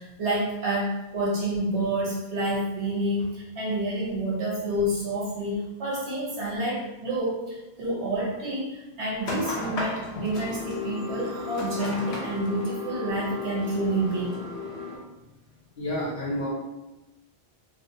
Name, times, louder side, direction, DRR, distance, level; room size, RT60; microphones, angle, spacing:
voice 1, 0.0-14.3, right 1 dB, 75° right, -5 dB, 1.3 m, -29 dB
sound 1, 9.2-15.0, left 3 dB, 85° left, 1.0 m, -34 dB
voice 2, 15.7-16.5, left 1 dB, 65° left, -6 dB, 1.3 m, -29 dB
3.0 x 2.9 x 2.6 m, 1.0 s
omnidirectional pair, 1.1 m